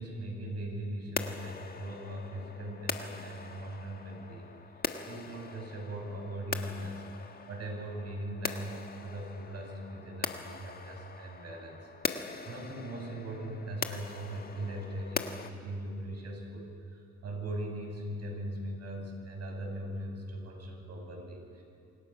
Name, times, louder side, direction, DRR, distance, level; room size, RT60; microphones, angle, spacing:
voice 1, 0.0-4.5 5.0-8.7 9.0-21.6, right 1 dB, 55° right, 1 dB, 6.8 m, -40 dB
sound 1, 1.2-15.5, left 4 dB, 30° left, 1.4 m, -41 dB
26.5 x 24.5 x 5.7 m, 2.6 s
cardioid pair, 90°, 30 cm